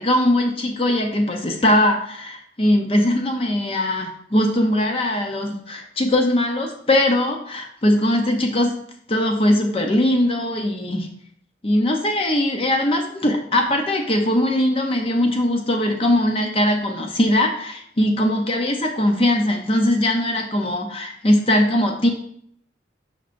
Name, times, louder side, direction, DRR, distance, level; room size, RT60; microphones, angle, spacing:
voice 1, 0.0-8.8 9.1-11.1 11.6-22.1, left 1 dB, 30° left, 3 dB, 0.7 m, -20 dB
8.1 x 5.6 x 2.6 m, 0.67 s
head